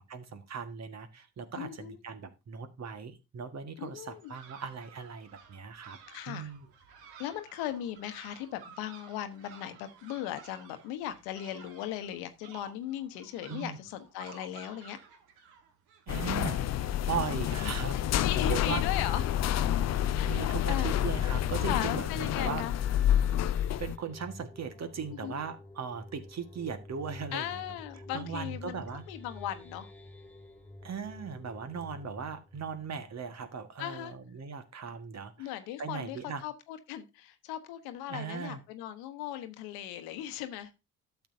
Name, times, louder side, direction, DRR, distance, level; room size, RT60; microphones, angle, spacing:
voice 1, 0.0-6.0 6.3-6.7 13.5-13.8 16.1-18.9 20.0-22.6 23.8-27.8 28.1-29.0 30.8-35.5 35.8-36.4 38.1-38.6, right 6 dB, 45° right, 9 dB, 1.6 m, -38 dB
voice 2, 1.6-2.0 3.8-4.3 6.1-6.5 7.2-15.0 17.6-19.2 20.1-20.3 20.7-21.0 21.6-22.7 25.2-25.4 27.3-29.9 33.8-34.1 35.4-40.7, left 11 dB, 80° left, 10 dB, 1.1 m, -38 dB
sound 1, 4.1-16.5, right 7 dB, 80° right, 1.5 m, -54 dB
sound 2, 16.1-24.0, left 11 dB, 45° left, 0.5 m, -29 dB
sound 3, 18.3-33.8, left 1 dB, 5° left, 1.9 m, -50 dB
12.0 x 7.1 x 2.7 m, 0.26 s
hypercardioid pair, 50°, 36 cm